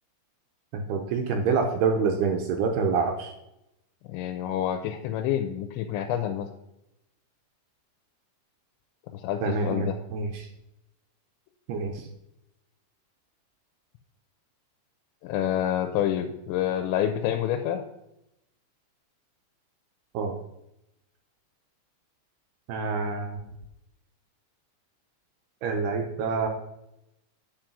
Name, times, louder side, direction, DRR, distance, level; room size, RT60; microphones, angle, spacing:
voice 1, 0.7-3.3 9.4-10.5 11.7-12.1 20.1-20.4 22.7-23.4 25.6-26.5, right 5 dB, 80° right, 4 dB, 2.5 m, -27 dB
voice 2, 4.1-6.5 9.1-10.0 15.2-17.8, left 10 dB, 85° left, 5 dB, 2.9 m, -28 dB
9.1 x 4.8 x 5.9 m, 0.84 s
omnidirectional pair, 5.2 m